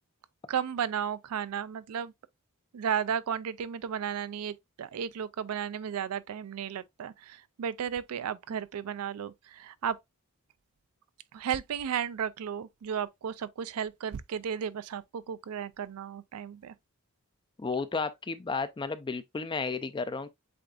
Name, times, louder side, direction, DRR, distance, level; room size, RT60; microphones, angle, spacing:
voice 1, 0.5-2.1 2.7-10.0 11.3-16.7, right 8 dB, 85° right, 0.4 m, -34 dB
voice 2, 17.6-20.3, left 4 dB, 20° left, 0.4 m, -33 dB
7.7 x 2.6 x 2.3 m
head